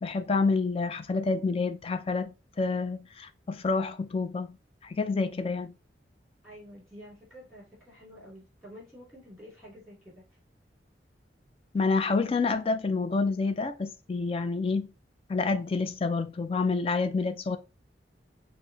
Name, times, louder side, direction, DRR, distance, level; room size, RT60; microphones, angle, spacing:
voice 1, 0.0-4.5 4.8-5.7 11.7-14.9 15.3-17.6, left 4 dB, 30° left, 0.4 m, -28 dB
voice 2, 6.4-10.3, equal, ahead, 2.2 m, -49 dB
5.6 x 2.1 x 2.7 m
head